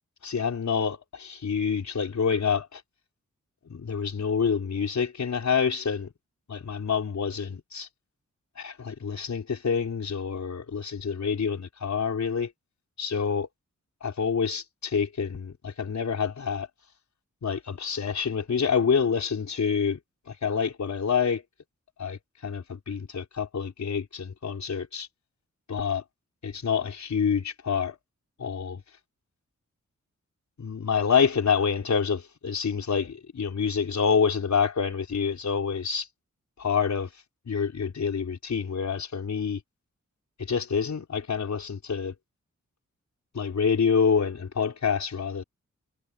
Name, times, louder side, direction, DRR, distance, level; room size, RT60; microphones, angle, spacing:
voice 1, 0.2-2.8 3.7-6.1 6.5-7.9 8.6-12.5 13.0-13.5 14.0-16.7 17.4-20.0 20.3-21.4 22.0-25.1 25.7-26.0 26.4-28.0 28.4-28.8 30.6-36.1 36.6-37.1 37.5-39.6 40.4-42.1 43.3-45.4, left 6 dB, 65° left, 4.4 m, -27 dB
wide cardioid pair, 160°, 30 cm